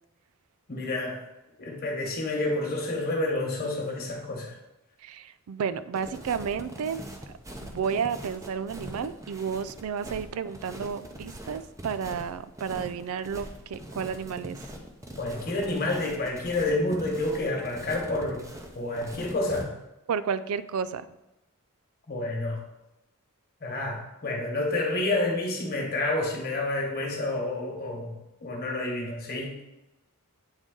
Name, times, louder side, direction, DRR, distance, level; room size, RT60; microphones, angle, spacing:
voice 1, 0.7-1.2 1.6-4.6 15.2-19.8 22.1-22.6 23.6-29.6, left 2 dB, 45° left, 0 dB, 1.3 m, -29 dB
voice 2, 5.0-14.6 20.1-21.1, right 6 dB, 80° right, 14 dB, 0.3 m, -32 dB
sound 1, 5.9-19.6, right 1 dB, 15° right, 0.6 m, -42 dB
8.8 x 3.7 x 3.8 m, 0.95 s
head